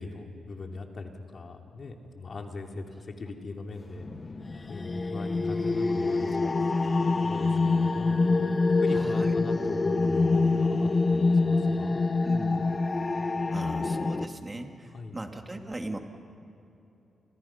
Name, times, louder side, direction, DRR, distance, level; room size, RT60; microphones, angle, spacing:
voice 1, 0.0-4.1 4.7-6.4 7.2-8.3 8.7-12.0 14.9-15.1, left 3 dB, 45° left, 3 dB, 2.9 m, -40 dB
sound 1, 4.1-14.2, left 3 dB, 30° left, 1.0 m, -26 dB
voice 2, 8.9-9.3 12.2-12.7 13.5-16.0, right 2 dB, 20° right, 4 dB, 2.3 m, -39 dB
30.0 x 26.5 x 5.9 m, 2.9 s
cardioid pair, 105°, 0 cm